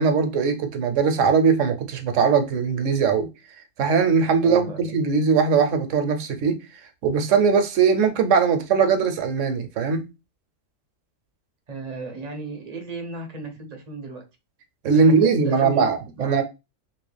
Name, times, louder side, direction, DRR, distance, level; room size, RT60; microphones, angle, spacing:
voice 1, 0.0-3.3 3.8-6.6 7.0-10.1 14.8-16.4, right 5 dB, 70° right, 1.0 m, -20 dB
voice 2, 4.4-4.9 11.7-14.2 14.9-15.9 16.2-16.4, right 3 dB, 40° right, 0.6 m, -35 dB
3.1 x 2.8 x 3.3 m
omnidirectional pair, 1.4 m